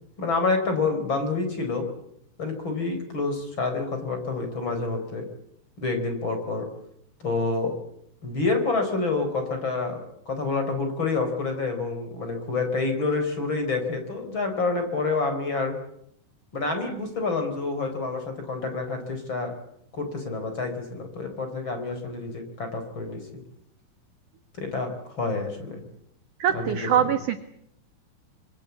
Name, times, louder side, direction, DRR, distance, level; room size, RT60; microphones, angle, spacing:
voice 1, 0.2-1.9 2.4-5.3 5.8-6.7 7.2-7.8 8.2-15.8 16.5-19.5 19.9-23.2 24.6-25.8 26.5-26.9, left 3 dB, 30° left, 6 dB, 4.4 m, -28 dB
voice 2, 26.4-27.4, right 9 dB, 65° right, 8 dB, 2.1 m, -23 dB
25.5 x 24.0 x 8.3 m, 0.74 s
omnidirectional pair, 5.1 m